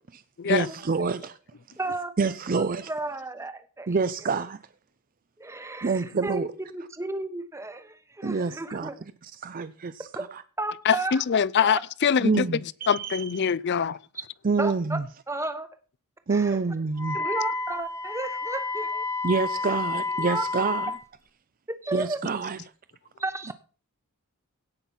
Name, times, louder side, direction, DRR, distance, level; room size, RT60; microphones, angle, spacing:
voice 1, 0.1-1.4 2.2-2.9 3.9-4.6 5.8-6.5 8.2-8.9 9.2-10.4 12.2-13.4 14.4-15.1 16.3-17.2 19.2-20.9 21.9-22.6, right 4 dB, 40° right, 0.5 m, -27 dB
voice 2, 1.8-2.1 2.5-4.0 5.4-9.0 10.6-11.2 11.6-11.8 14.6-15.0 15.3-15.7 16.3-16.6 17.1-19.0 20.2-20.4 21.8-22.2 23.2-23.5, right 2 dB, 15° right, 1.1 m, -33 dB
voice 3, 11.3-12.4 12.9-14.0, left 7 dB, 50° left, 0.4 m, -23 dB
Wind instrument woodwind instrument, 17.0-21.0, left 3 dB, 15° left, 0.7 m, -30 dB
17.0 x 5.9 x 5.6 m
head